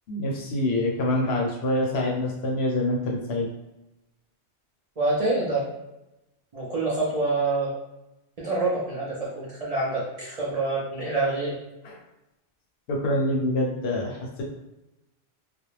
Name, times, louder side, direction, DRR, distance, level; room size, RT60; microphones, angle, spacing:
voice 1, 0.1-3.5 11.8-12.0 12.9-14.4, left 1 dB, 70° left, -1 dB, 0.9 m, -26 dB
voice 2, 5.0-5.7 6.5-7.7 8.4-11.5, right 2 dB, 45° right, -6 dB, 0.5 m, -26 dB
2.4 x 2.1 x 3.1 m, 0.94 s
omnidirectional pair, 1.1 m